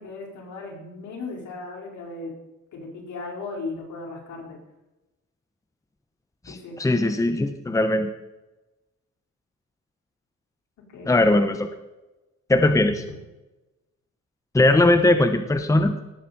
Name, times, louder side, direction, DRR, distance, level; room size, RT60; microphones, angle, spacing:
voice 1, 0.0-2.3 2.7-4.6 6.5-6.8 10.9-11.3 12.8-13.0, left 3 dB, 75° left, -2 dB, 5.2 m, -36 dB
voice 2, 6.5-8.1 11.1-11.7 12.5-12.9 14.5-16.0, left 2 dB, 10° left, 8 dB, 1.0 m, -19 dB
18.5 x 8.4 x 4.4 m, 1.0 s
cardioid pair, 90°, 30 cm